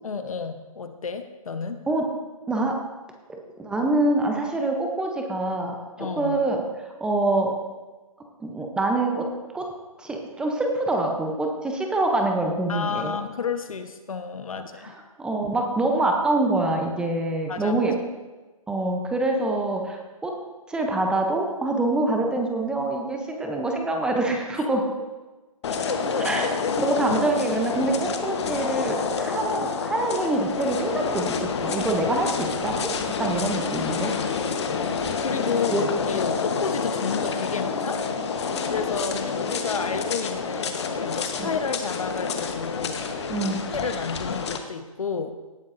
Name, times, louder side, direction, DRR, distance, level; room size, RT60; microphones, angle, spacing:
voice 1, 0.0-1.8 6.0-6.4 12.7-14.9 17.5-17.8 25.9-26.8 35.2-38.0 38.7-43.3 43.7-45.3, left 5 dB, 70° left, 8 dB, 1.1 m, -31 dB
voice 2, 2.5-2.8 3.3-7.5 8.4-9.3 9.5-9.7 10.0-13.2 14.8-18.0 18.7-20.3 20.7-24.8 26.2-32.9 33.2-34.1 35.7-35.8 36.1-36.4 41.4-41.5 43.3-43.6, right 2 dB, 5° right, 2 dB, 0.7 m, -25 dB
sound 1, 25.6-44.6, left 5 dB, 50° left, 1.1 m, -28 dB
17.5 x 9.3 x 2.6 m, 1.2 s
figure-of-eight pair, 145°, 18 cm